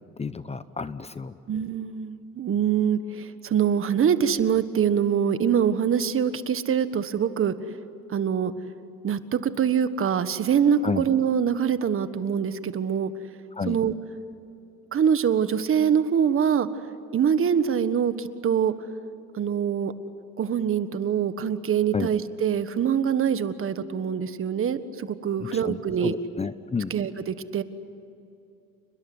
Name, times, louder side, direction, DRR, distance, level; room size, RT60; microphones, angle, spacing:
voice 1, 0.2-1.3 10.8-11.0 13.6-13.8 21.9-22.1 25.4-26.9, left 5 dB, 20° left, 13 dB, 0.8 m, -31 dB
voice 2, 1.5-7.6 8.1-8.5 9.0-13.1 13.7-13.9 14.9-16.7 17.1-18.7 19.3-19.9 20.4-26.1 26.9-27.6, right 8 dB, 40° right, 11 dB, 1.5 m, -24 dB
29.5 x 21.0 x 9.6 m, 2.7 s
cardioid pair, 110°, 32 cm